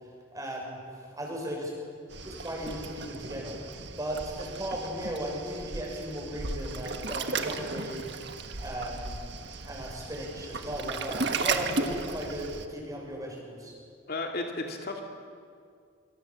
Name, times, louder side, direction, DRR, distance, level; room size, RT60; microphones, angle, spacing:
voice 1, 0.3-1.7 2.2-3.6 4.0-8.0 8.6-9.2 9.6-13.7, equal, 20° right, -1 dB, 6.8 m, -36 dB
Waves surf, 2.1-12.7, right 4 dB, 65° right, 1.6 m, -35 dB
voice 2, 14.1-15.0, left 2 dB, 55° left, 2 dB, 2.5 m, -33 dB
25.5 x 25.5 x 7.5 m, 2.2 s
head